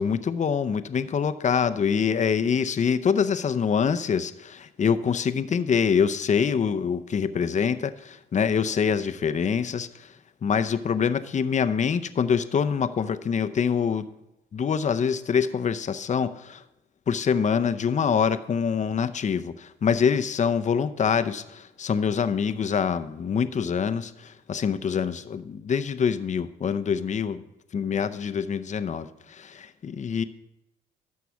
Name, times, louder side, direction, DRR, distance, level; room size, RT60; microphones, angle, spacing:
voice 1, 0.0-10.1 10.4-14.1 14.5-16.6 17.1-27.4 27.7-30.2, left 6 dB, 35° left, 12 dB, 0.6 m, -25 dB
12.5 x 4.7 x 7.0 m, 0.89 s
cardioid pair, 90°, 20 cm